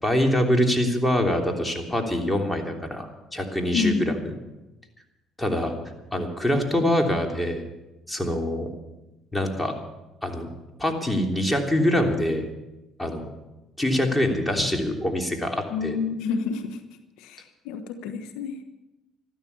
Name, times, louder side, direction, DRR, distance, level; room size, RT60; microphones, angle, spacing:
voice 1, 0.0-4.1 5.4-5.7 6.1-7.6 8.1-8.7 9.3-9.7 10.2-10.5 10.8-12.4 13.0-13.2 13.8-15.9, left 1 dB, 10° left, 2 dB, 3.2 m, -24 dB
voice 2, 3.7-4.1 15.7-16.8 17.2-18.6, left 5 dB, 85° left, 8 dB, 1.3 m, -28 dB
13.5 x 13.0 x 7.1 m, 1.0 s
supercardioid pair, 75°, 0 cm